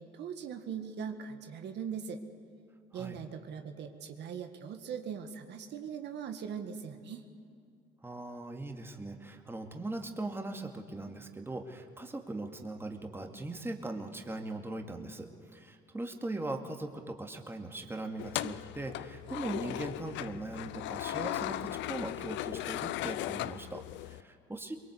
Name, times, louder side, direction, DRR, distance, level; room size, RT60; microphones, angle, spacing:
voice 1, 0.0-2.2 2.9-7.2, right 7 dB, 65° right, 6 dB, 2.0 m, -40 dB
voice 2, 8.0-24.8, right 2 dB, 10° right, 4 dB, 2.4 m, -40 dB
sound 1, 18.2-24.2, left 15 dB, 75° left, 0.7 m, -37 dB
23.5 x 22.0 x 8.3 m, 2.5 s
cardioid pair, 95°, 19 cm